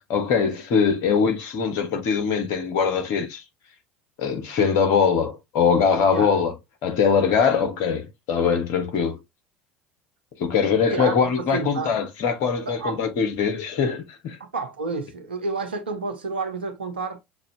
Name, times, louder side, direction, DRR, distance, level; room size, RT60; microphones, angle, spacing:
voice 1, 0.1-3.4 4.2-6.5 6.8-9.2 10.4-14.4, left 6 dB, 60° left, 1.4 m, -22 dB
voice 2, 10.9-12.0 12.7-13.0 14.4-17.2, right 3 dB, 90° right, 0.9 m, -30 dB
6.7 x 2.6 x 2.8 m
hypercardioid pair, 70°, 5 cm